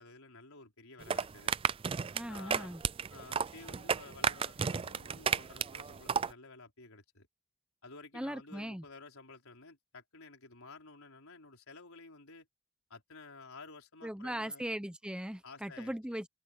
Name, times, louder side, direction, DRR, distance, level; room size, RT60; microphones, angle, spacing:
voice 1, 0.0-1.5 2.3-2.8 3.1-7.3 7.8-12.5 12.9-14.7 15.4-15.9, left 3 dB, 90° left, 4.7 m, -53 dB
sound 1, 1.0-6.3, right 6 dB, 25° right, 0.3 m, -33 dB
voice 2, 2.1-2.8 8.1-8.8 14.0-16.3, equal, 5° right, 0.8 m, -39 dB
head